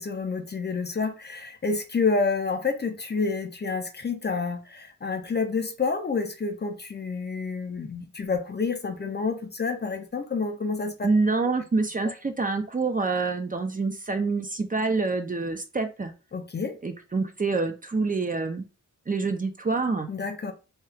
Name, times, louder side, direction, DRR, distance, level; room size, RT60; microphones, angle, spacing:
voice 1, 0.0-11.1 16.3-16.7 20.1-20.5, left 4 dB, 35° left, 0.4 m, -29 dB
voice 2, 11.0-16.1 16.8-18.6 19.1-20.1, right 3 dB, 25° right, 0.4 m, -26 dB
2.8 x 2.2 x 3.2 m
wide cardioid pair, 125°, 31 cm